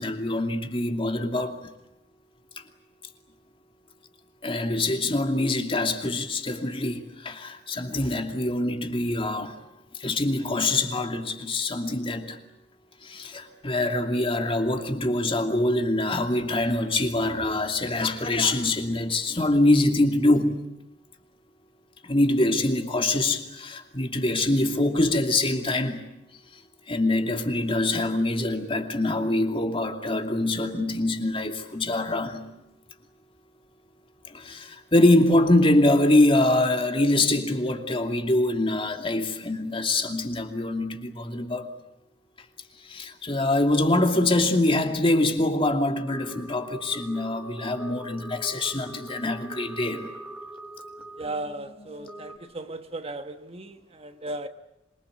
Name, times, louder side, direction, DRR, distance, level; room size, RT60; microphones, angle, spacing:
voice 1, 0.0-1.6 4.4-9.6 10.0-12.4 13.0-20.6 22.0-26.0 26.9-32.4 34.3-41.7 42.9-50.1, left 2 dB, 30° left, 2.6 m, -24 dB
sound 1, 46.0-52.4, right 1 dB, ahead, 2.8 m, -43 dB
voice 2, 51.2-54.5, right 2 dB, 35° right, 1.2 m, -36 dB
27.0 x 23.5 x 8.2 m
head